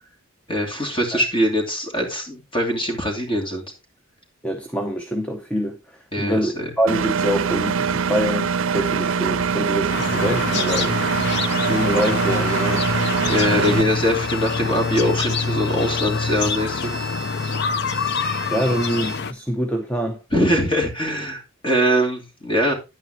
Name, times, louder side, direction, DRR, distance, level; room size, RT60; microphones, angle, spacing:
voice 1, 0.5-3.6 6.1-6.7 13.3-16.9 20.3-22.7, equal, 25° left, 2.8 m, -22 dB
voice 2, 4.4-11.0 11.7-12.9 18.5-20.2, equal, 5° left, 0.7 m, -25 dB
Engine, 6.9-13.8, right 6 dB, 75° right, 0.5 m, -23 dB
sound 1, 9.9-19.3, left 5 dB, 55° left, 0.6 m, -26 dB
sound 2, 12.0-19.2, equal, 90° left, 6.9 m, -38 dB
10.5 x 9.2 x 2.9 m
head